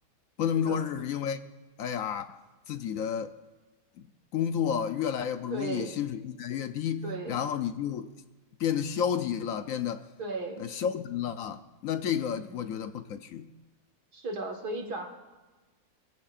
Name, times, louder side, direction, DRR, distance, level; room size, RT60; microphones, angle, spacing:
voice 1, 0.4-1.4 1.8-3.3 4.0-4.1 4.3-8.1 8.6-10.1 10.6-13.5, left 8 dB, 65° left, 1.0 m, -31 dB
voice 2, 5.5-5.9 7.0-7.4 10.2-10.7 12.3-12.7 14.1-15.1, right 3 dB, 80° right, 2.3 m, -36 dB
24.0 x 15.0 x 2.5 m
omnidirectional pair, 1.7 m